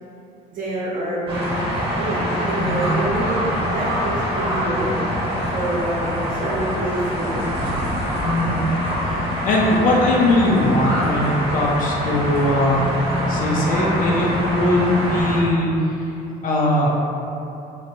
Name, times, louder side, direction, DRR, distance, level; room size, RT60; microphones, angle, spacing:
voice 1, 0.5-1.3 1.9-5.0 5.5-7.4, right 1 dB, 55° right, -7 dB, 0.9 m, -27 dB
sound 1, 1.3-15.4, equal, 35° right, 1.2 m, -24 dB
voice 2, 8.2-8.6 9.4-12.8 13.3-15.9 16.4-16.9, left 1 dB, 50° left, -3 dB, 0.5 m, -20 dB
2.9 x 2.1 x 2.7 m, 2.7 s
cardioid pair, 110°, 17 cm